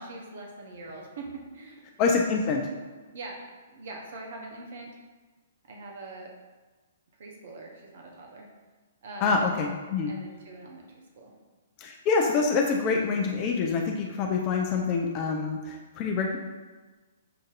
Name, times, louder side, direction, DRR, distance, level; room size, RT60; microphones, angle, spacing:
voice 1, 0.0-1.8 3.1-3.4 3.7-5.0 5.7-6.3 7.1-8.5 9.0-9.5 10.0-11.3, right 2 dB, 55° right, 0 dB, 0.7 m, -43 dB
voice 2, 2.0-2.6 9.2-10.1 11.8-16.4, left 4 dB, 35° left, 1 dB, 0.4 m, -26 dB
6.6 x 2.6 x 2.4 m, 1.3 s
figure-of-eight pair, 120°, 0 cm